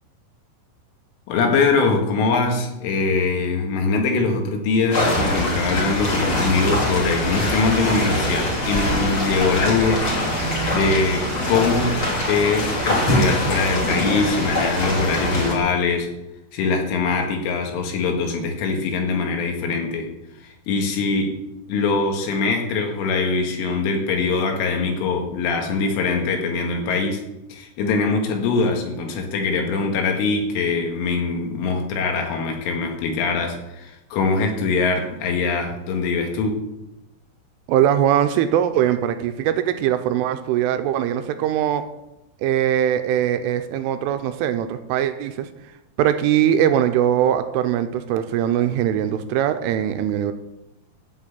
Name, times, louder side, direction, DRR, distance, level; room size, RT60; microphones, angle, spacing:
voice 1, 1.3-10.0 10.7-12.0 12.3-16.1 16.5-20.1 20.4-21.3 21.7-27.2 27.5-36.6, left 4 dB, 75° left, 2 dB, 4.2 m, -22 dB
sound 1, 4.9-15.5, left 1 dB, 30° left, 3.3 m, -23 dB
voice 2, 37.7-41.8 42.4-45.5 46.0-50.3, right 10 dB, 80° right, 8 dB, 3.1 m, -21 dB
13.0 x 6.7 x 8.6 m, 0.92 s
omnidirectional pair, 6.0 m